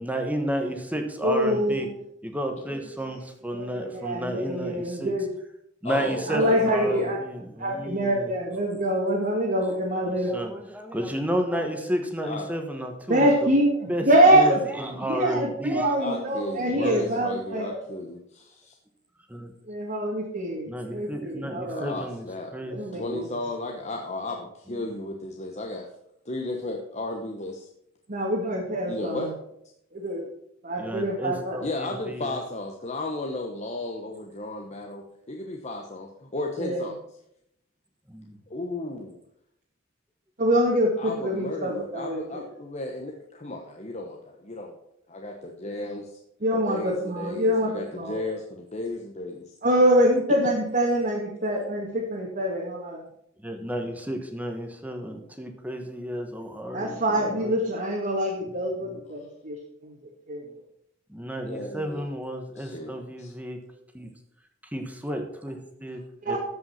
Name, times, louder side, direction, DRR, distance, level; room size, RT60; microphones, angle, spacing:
voice 1, 0.0-1.9 2.2-5.1 5.8-8.3 9.6-13.5 13.9-15.9 16.7-17.2 19.3-19.5 20.7-22.2 22.5-23.3 30.8-32.3 38.1-38.4 53.4-57.6 58.4-59.0 61.1-63.6 63.9-64.1 64.7-66.4, equal, 10° right, 4 dB, 1.2 m, -32 dB
voice 2, 1.2-1.9 3.5-5.3 6.3-7.2 7.6-10.3 13.1-14.6 15.1-17.8 19.7-22.0 22.7-23.3 28.1-29.3 29.9-30.2 30.6-31.6 36.6-36.8 40.4-42.4 46.4-48.2 49.6-53.0 56.7-59.6 59.8-59.9 60.3-60.4 66.2-66.4, right 1 dB, 45° right, -4 dB, 1.9 m, -25 dB
voice 3, 5.8-7.2 12.2-12.5 16.0-18.8 21.7-22.5 22.8-25.9 26.2-27.7 28.9-29.3 31.6-37.0 38.5-39.2 41.0-44.8 45.1-46.2 46.5-49.5 59.2-59.3 61.5-62.1 62.6-63.3, left 2 dB, 35° left, 2 dB, 1.1 m, -34 dB
14.0 x 5.6 x 5.8 m, 0.76 s
head